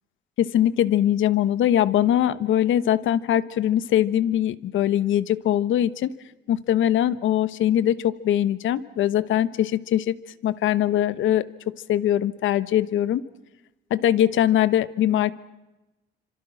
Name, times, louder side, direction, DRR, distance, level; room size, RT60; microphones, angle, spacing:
voice 1, 0.4-6.1 6.5-10.2 10.4-13.2 13.9-15.3, left 11 dB, 80° left, 15 dB, 1.1 m, -22 dB
28.5 x 26.0 x 6.0 m, 1.0 s
cardioid pair, 90°, 20 cm